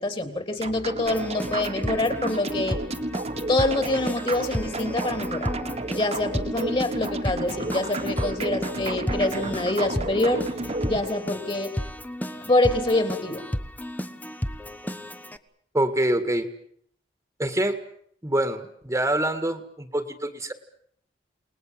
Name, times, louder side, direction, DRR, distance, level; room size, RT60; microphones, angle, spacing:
voice 1, 0.0-2.8 3.5-5.5 5.9-10.4 10.9-11.7 12.4-13.5, left 2 dB, 30° left, 8 dB, 3.3 m, -25 dB
sound 1, 0.6-11.1, right 2 dB, 35° right, 1.7 m, -32 dB
Keyboard (musical), 1.1-15.4, equal, 10° left, 1.3 m, -33 dB
voice 2, 15.7-16.5 17.4-17.8 18.2-20.5, right 1 dB, 15° right, 8 dB, 2.0 m, -25 dB
29.5 x 20.0 x 7.6 m, 0.64 s
head